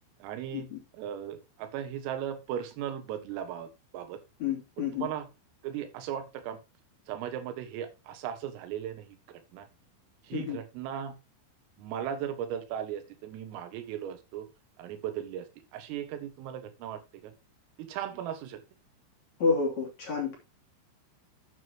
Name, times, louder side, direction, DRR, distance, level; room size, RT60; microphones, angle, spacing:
voice 1, 0.2-3.7 3.9-4.2 4.8-5.3 5.6-6.6 7.1-9.7 10.2-11.2 11.8-14.5 14.8-15.5 15.7-17.3 17.8-18.6, right 9 dB, 90° right, 10 dB, 4.1 m, -37 dB
voice 2, 4.4-5.1 10.3-10.6 19.4-20.4, left 5 dB, 40° left, 0 dB, 3.7 m, -29 dB
12.0 x 8.4 x 2.9 m, 0.26 s
omnidirectional pair, 5.8 m